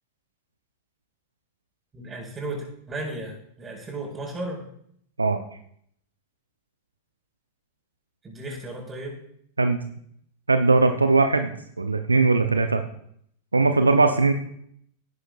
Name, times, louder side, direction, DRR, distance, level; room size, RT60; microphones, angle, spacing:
voice 1, 1.9-4.7 8.2-9.2, right 2 dB, 20° right, 0 dB, 5.2 m, -35 dB
voice 2, 10.5-11.5 11.8-12.8 13.5-14.3, right 3 dB, 80° right, 8 dB, 0.7 m, -19 dB
17.5 x 9.8 x 2.5 m, 0.68 s
figure-of-eight pair, 90°, 0 cm